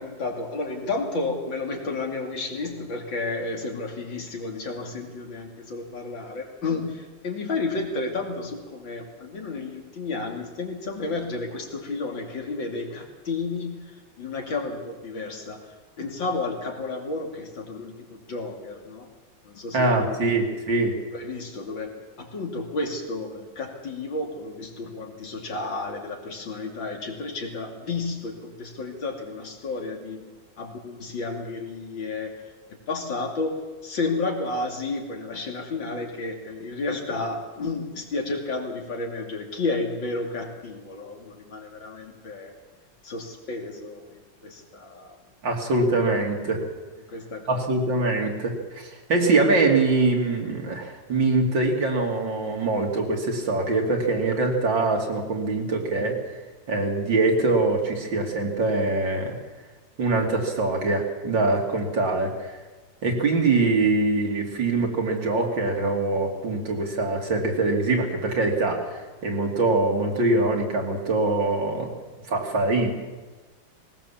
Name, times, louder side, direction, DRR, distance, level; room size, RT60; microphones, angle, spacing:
voice 1, 0.0-15.6 16.0-19.1 19.4-20.5 21.1-30.2 30.6-32.5 32.9-33.6 33.8-42.5 43.0-45.2 47.1-47.6, left 3 dB, 75° left, 2 dB, 3.4 m, -32 dB
voice 2, 19.7-21.0 45.4-46.6 47.5-56.2 56.7-59.4 60.0-62.5 63.0-71.9 72.3-72.9, right 3 dB, 75° right, 1 dB, 3.4 m, -23 dB
19.5 x 19.0 x 7.3 m, 1.2 s
omnidirectional pair, 2.1 m